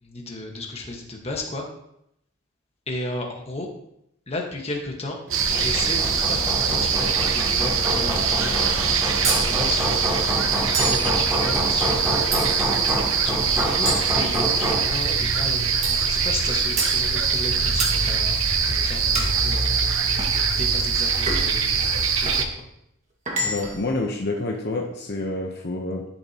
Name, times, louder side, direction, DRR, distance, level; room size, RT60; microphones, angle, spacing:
voice 1, 0.0-1.6 2.9-3.7 4.3-5.2 5.5-12.3 13.2-18.4 18.6-19.8 20.6-22.6, left 2 dB, 30° left, 1 dB, 1.5 m, -34 dB
Hammer, 5.3-14.9, right 1 dB, 10° right, 3.4 m, -28 dB
sound 1, 5.3-22.4, right 5 dB, 80° right, 1.0 m, -23 dB
sound 2, 9.2-9.5 10.7-11.1 12.3-12.8 13.9-14.8 15.8-16.1 16.8-17.0 17.8-18.0 19.1-19.4 20.2-20.4 21.3-21.6 22.2-22.5 23.3-23.9, right 2 dB, 35° right, 1.8 m, -28 dB
voice 2, 23.4-26.1, left 2 dB, 55° left, 1 dB, 0.9 m, -28 dB
11.5 x 7.2 x 2.9 m, 0.78 s
head